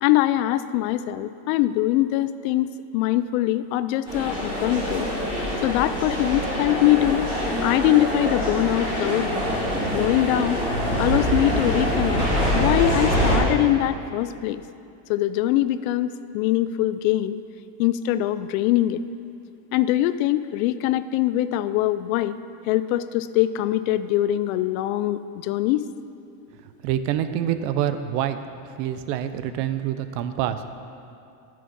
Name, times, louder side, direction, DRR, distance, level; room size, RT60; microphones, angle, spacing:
voice 1, 0.0-2.7 2.9-5.1 5.6-7.3 7.6-9.4 9.9-10.6 11.0-12.2 12.5-14.6 15.1-17.4 17.8-19.0 19.7-22.4 22.7-25.8, left 14 dB, 60° left, 13 dB, 0.5 m, -23 dB
sound 1, 4.1-13.4, equal, 10° right, 3.0 m, -24 dB
voice 2, 26.8-28.4 28.8-30.7, right 10 dB, 80° right, 10 dB, 0.8 m, -26 dB
12.5 x 6.7 x 5.5 m, 2.6 s
cardioid pair, 175°, 47 cm